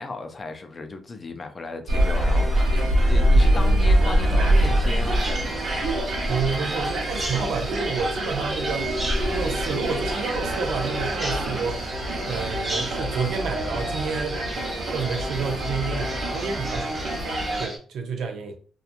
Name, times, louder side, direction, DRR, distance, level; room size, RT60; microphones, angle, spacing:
voice 1, 0.0-5.3, left 3 dB, 30° left, 0.4 m, -35 dB
sound 1, 1.9-17.7, right 1 dB, 60° right, 0.9 m, -24 dB
Bird vocalization bird call bird song, 5.1-17.8, right 1 dB, 30° right, 0.7 m, -37 dB
voice 2, 6.3-9.0 9.3-11.8 12.2-14.4 14.9-17.1 17.6-18.5, right 5 dB, 80° right, 0.5 m, -29 dB
2.8 x 2.3 x 2.5 m
cardioid pair, 115°, 0 cm